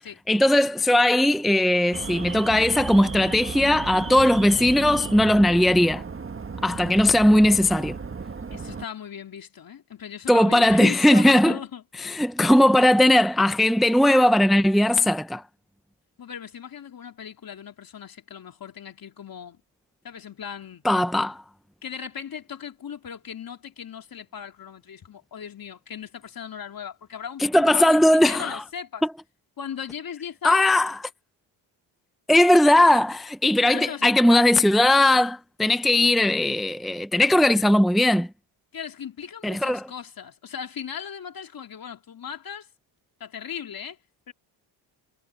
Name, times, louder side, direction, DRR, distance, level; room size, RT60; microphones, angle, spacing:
voice 1, 0.3-6.0 6.6-8.0 10.3-11.5 12.0-15.4 20.8-21.4 27.4-28.6 30.4-31.0 32.3-38.3 39.4-39.8, left 1 dB, ahead, 0.8 m, -19 dB
Alarm, 1.9-8.8, right 5 dB, 25° right, 1.7 m, -34 dB
voice 2, 8.5-11.8 16.2-19.6 20.0-20.8 21.8-29.0 29.6-30.7 32.8-33.0 33.7-34.4 38.7-42.7 43.2-44.0 44.3-44.4, left 8 dB, 45° left, 3.3 m, -37 dB
supercardioid pair, 70°, 48 cm